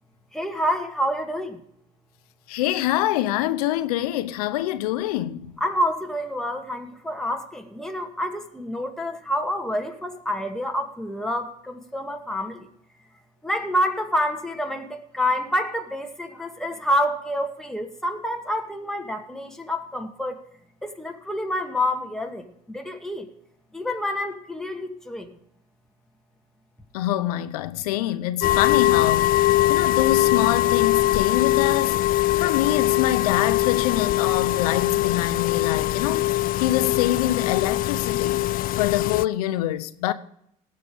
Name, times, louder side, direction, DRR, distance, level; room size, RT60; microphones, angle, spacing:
voice 1, 0.3-1.6 5.6-12.7 13.4-20.4 20.8-23.3 23.7-25.4, equal, ahead, 2.1 m, -28 dB
voice 2, 2.5-5.5 26.9-32.0 32.4-36.2 36.6-38.4 38.8-40.1, left 13 dB, 90° left, 0.8 m, -25 dB
sound 1, 28.4-39.3, left 15 dB, 50° left, 0.4 m, -22 dB
18.0 x 6.7 x 5.2 m
supercardioid pair, 75°, 19 cm